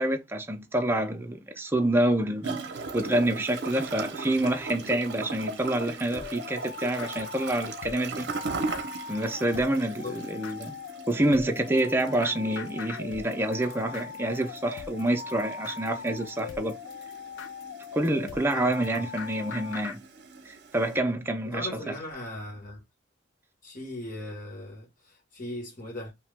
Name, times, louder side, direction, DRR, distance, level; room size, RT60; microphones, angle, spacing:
voice 1, 0.0-2.6 2.9-8.3 9.1-10.8 11.1-16.8 17.9-20.0 20.5-21.9, right 1 dB, 10° right, 0.4 m, -27 dB
Gurgling / Toilet flush, 2.4-21.0, right 4 dB, 60° right, 0.6 m, -39 dB
sound 1, 6.1-20.0, left 6 dB, 80° left, 0.5 m, -40 dB
voice 2, 9.9-10.2 18.5-19.1 21.4-22.8 23.6-26.1, left 1 dB, 45° left, 1.3 m, -39 dB
2.8 x 2.2 x 3.3 m
head